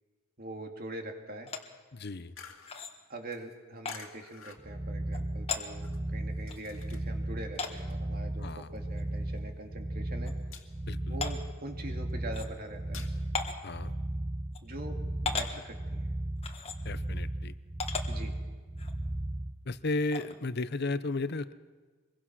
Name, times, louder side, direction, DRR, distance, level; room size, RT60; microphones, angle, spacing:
voice 1, 0.4-1.5 3.1-5.9 6.1-10.3 11.1-13.1 14.6-15.0 15.2-16.1 18.1-18.4, right 1 dB, 45° right, 3 dB, 2.4 m, -43 dB
sound 1, 1.5-1.6 2.7-2.9 3.9-4.0 5.1-5.2 5.5-5.7 6.5-6.6 7.6-7.8 9.0-9.1 9.5-9.6 10.3-10.4 11.2-11.3 12.3-12.5 13.4-13.6 14.5-14.6 15.3-15.5 16.4-16.8 17.8-18.1 18.8-18.9 20.1-20.3, left 4 dB, 30° left, 1.5 m, -35 dB
voice 2, 1.9-2.3 8.4-8.7 10.9-11.2 13.6-13.9 16.8-17.5 19.7-21.5, left 2 dB, 50° left, 14 dB, 0.8 m, -34 dB
sound 2, 2.4-7.3 7.5-9.5 9.8-10.1 10.4-11.0 11.5-13.1, left 7 dB, 75° left, 2.3 m, -51 dB
sound 3, 4.6-19.5, right 1 dB, 20° right, 0.7 m, -36 dB
25.5 x 22.0 x 6.2 m, 1.4 s
head